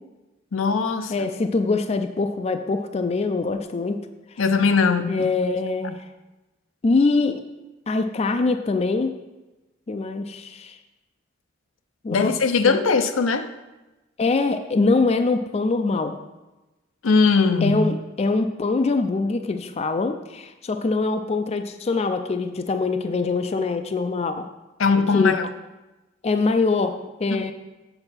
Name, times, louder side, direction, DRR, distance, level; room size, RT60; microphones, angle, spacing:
voice 1, 0.5-1.3 4.4-5.3 12.1-13.5 17.0-17.8 24.8-25.5, left 4 dB, 85° left, 9 dB, 0.6 m, -20 dB
voice 2, 1.1-4.0 5.1-6.0 6.8-7.4 7.9-9.1 9.9-10.8 12.0-12.3 12.7-12.8 14.2-16.1 17.6-24.5 25.1-25.3 26.2-27.5, left 3 dB, 30° left, 8 dB, 0.4 m, -23 dB
7.9 x 4.4 x 5.7 m, 1.1 s
head